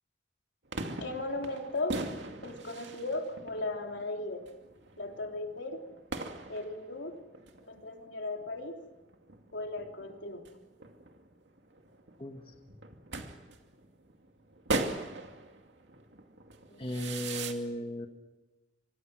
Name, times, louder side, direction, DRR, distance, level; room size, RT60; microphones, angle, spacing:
sound 1, 0.7-17.5, right 2 dB, 75° right, 2.4 m, -40 dB
voice 1, 1.0-2.1 2.4-4.5 5.0-5.8 6.5-7.2 7.6-8.8 9.5-10.5 16.7-17.1, left 2 dB, 80° left, 3 dB, 3.3 m, -37 dB
voice 2, 12.2-12.5 16.8-18.1, left 1 dB, 30° left, 4 dB, 1.8 m, -36 dB
27.5 x 25.5 x 6.3 m, 1.1 s
head